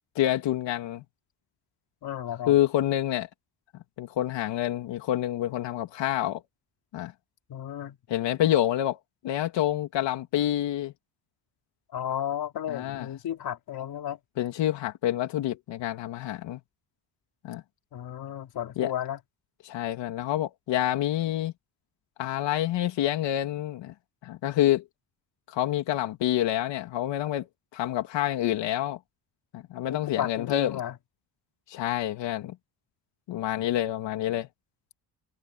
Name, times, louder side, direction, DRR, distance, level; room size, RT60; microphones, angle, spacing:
voice 1, 0.1-1.0 2.5-3.3 4.0-6.4 6.9-7.1 8.1-9.0 9.2-10.9 12.7-13.1 14.4-16.6 17.4-17.6 18.8-18.9 19.6-21.5 22.2-23.9 24.2-24.8 25.5-27.5 27.7-29.0 29.5-30.8 31.7-32.5 33.3-34.5, left 13 dB, 85° left, 3.0 m, -27 dB
voice 2, 2.0-2.6 7.5-8.0 11.9-14.2 17.9-19.2 29.9-30.9, left 10 dB, 60° left, 3.8 m, -33 dB
cardioid pair, 155°, 42 cm